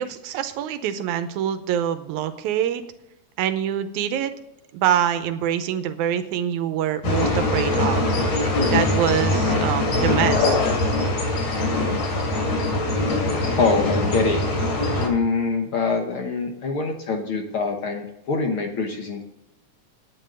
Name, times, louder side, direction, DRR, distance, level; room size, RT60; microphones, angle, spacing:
voice 1, 0.0-2.8 3.4-4.3 4.7-8.0 8.7-10.6, right 10 dB, 90° right, 10 dB, 2.2 m, -25 dB
sound 1, 7.0-15.1, left 2 dB, 75° left, 4.1 m, -22 dB
voice 2, 13.5-14.4 15.0-19.2, left 4 dB, 60° left, 3 dB, 1.6 m, -24 dB
9.2 x 9.0 x 6.2 m, 0.87 s
omnidirectional pair, 3.4 m